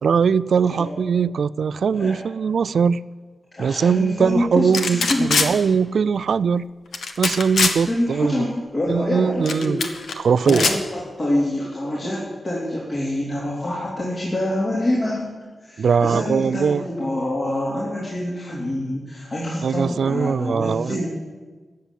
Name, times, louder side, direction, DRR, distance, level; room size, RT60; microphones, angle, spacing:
voice 1, 0.0-3.0 3.6-6.6 7.2-8.5 8.9-9.8 10.2-10.7 15.8-16.9 19.6-21.0, right 6 dB, 80° right, 18 dB, 0.3 m, -21 dB
voice 2, 3.5-5.6 7.8-9.8 10.4-15.3 15.6-21.1, left 1 dB, 40° left, -6 dB, 3.5 m, -26 dB
sound 1, 4.7-5.5 6.9-7.8 9.5-10.1 10.4-10.8, left 4 dB, 85° left, 1.3 m, -21 dB
14.0 x 7.6 x 10.0 m, 1.4 s
wide cardioid pair, 100°, 0 cm